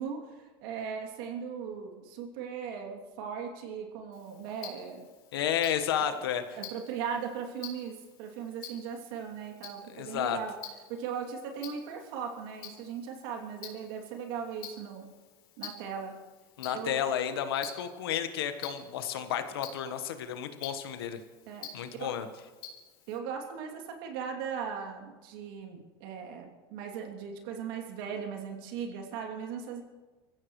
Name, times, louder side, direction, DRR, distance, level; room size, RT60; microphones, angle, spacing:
voice 1, 0.0-5.1 6.0-6.1 6.5-10.6 10.9-15.1 15.6-16.1 16.7-17.0 21.5-21.7 22.0-22.2 23.1-29.8, right 7 dB, 75° right, 2 dB, 2.9 m, -38 dB
Tick-tock, 4.1-23.2, left 7 dB, 75° left, 3.9 m, -50 dB
voice 2, 5.3-6.4 9.9-10.4 16.6-21.2 21.7-22.3, left 9 dB, 90° left, 8 dB, 1.4 m, -32 dB
25.0 x 15.0 x 3.2 m, 1.3 s
supercardioid pair, 110°, 12 cm